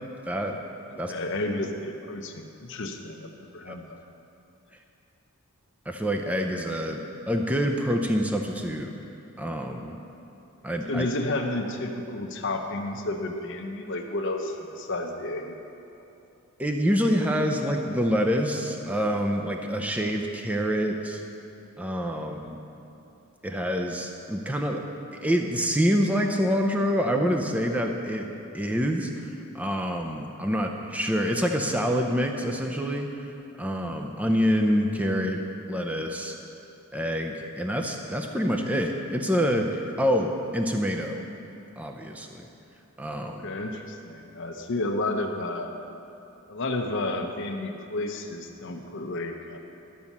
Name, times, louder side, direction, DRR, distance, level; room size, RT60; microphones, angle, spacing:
voice 1, 0.3-0.6 1.0-1.1 3.7-3.8 5.9-8.9 9.4-10.0 10.6-11.1 16.6-21.2 21.8-22.6 23.4-24.8 25.1-28.3 28.5-33.3 33.6-35.4 35.7-36.4 36.9-41.2 41.8-42.5 43.0-43.5, equal, 5° right, 2 dB, 0.5 m, -26 dB
voice 2, 0.9-4.0 10.9-15.6 43.4-45.7 46.5-49.6, left 2 dB, 55° left, 3 dB, 0.7 m, -31 dB
12.5 x 5.4 x 7.2 m, 2.8 s
head